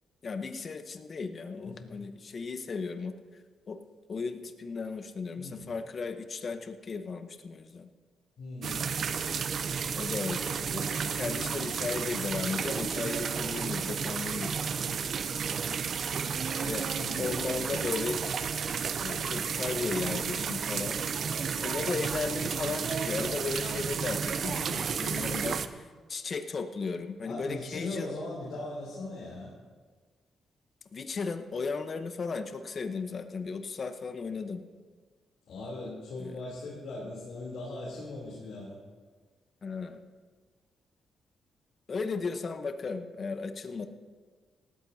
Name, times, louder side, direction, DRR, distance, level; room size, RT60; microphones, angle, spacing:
voice 1, 0.2-3.1 3.7-3.8 4.1-7.9 9.9-15.0 16.6-16.9 17.2-18.2 19.0-21.0 21.6-25.6 26.1-28.2 30.9-34.6 36.2-36.4 39.6-40.0 41.9-43.9, left 4 dB, 50° left, 8 dB, 1.0 m, -35 dB
voice 2, 1.6-1.9 5.4-5.7 8.4-8.9 17.0-17.8 25.4-25.7 27.2-29.5 35.5-38.8, left 2 dB, 75° left, -6 dB, 3.4 m, -40 dB
sound 1, 8.6-25.7, right 6 dB, 60° right, 0.6 m, -32 dB
18.5 x 13.5 x 2.8 m, 1.5 s
cardioid pair, 75°, 0 cm